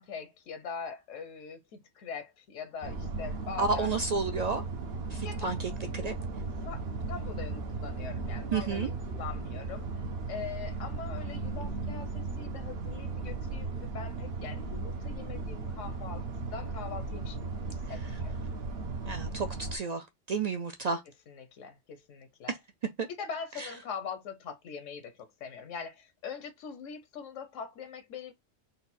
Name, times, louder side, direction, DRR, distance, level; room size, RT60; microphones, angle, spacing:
voice 1, 0.0-3.9 5.2-5.5 6.0-9.9 10.3-18.3 21.3-22.5 23.1-28.3, left 6 dB, 85° left, 1.0 m, -42 dB
sound 1, 2.8-19.8, right 3 dB, 60° right, 0.9 m, -36 dB
voice 2, 3.6-4.6 5.1-6.1 8.5-8.9 19.0-21.0 22.5-22.6 23.0-23.1 23.6-23.7, right 4 dB, 75° right, 0.3 m, -31 dB
4.0 x 2.4 x 4.0 m
omnidirectional pair, 1.3 m